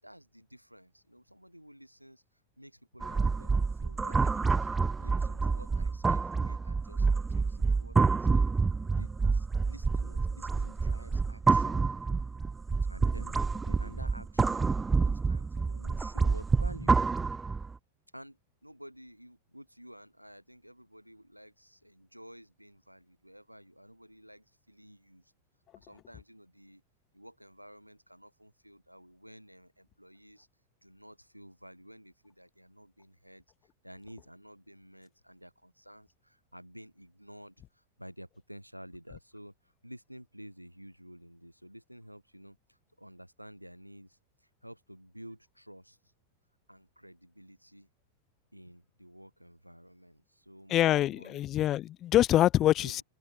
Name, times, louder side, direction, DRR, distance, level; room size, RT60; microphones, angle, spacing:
voice 1, 0.0-2.2 2.6-4.7 5.0-8.4 8.8-11.8 12.9-17.0 18.1-25.3 25.7-26.8 27.1-30.5 30.8-33.4 33.8-46.0 46.7-47.9 48.5-51.4 52.8-53.0, equal, 90° right, 7.1 m, -52 dB
sound 1, 3.0-17.7, right 4 dB, 15° right, 0.6 m, -28 dB
voice 2, 50.7-53.0, left 13 dB, 30° left, 0.5 m, -25 dB
figure-of-eight pair, 90°, 0 cm